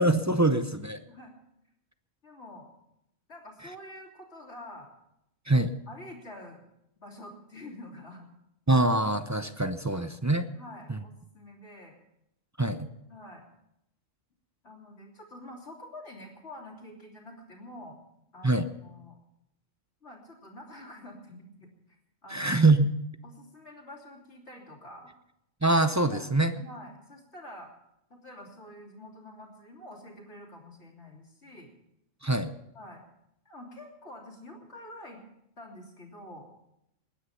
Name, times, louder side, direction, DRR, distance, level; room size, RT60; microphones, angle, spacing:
voice 1, 0.0-1.0 5.5-5.7 8.7-10.5 10.9-11.0 12.6-12.9 18.4-18.7 22.3-22.9 25.6-26.5 32.2-32.5, right 2 dB, 25° right, 10 dB, 0.4 m, -24 dB
voice 2, 2.2-2.7 3.3-4.9 5.9-6.6 7.0-8.3 9.9-10.1 10.5-12.0 13.1-13.5 14.6-18.0 18.3-19.2 20.0-21.7 22.2-22.6 23.2-25.1 26.1-26.3 26.5-27.7 28.1-31.7 32.7-33.0 33.4-35.2 35.6-36.5, left 1 dB, 55° left, 0 dB, 3.3 m, -47 dB
20.5 x 9.9 x 5.7 m, 0.81 s
omnidirectional pair, 1.4 m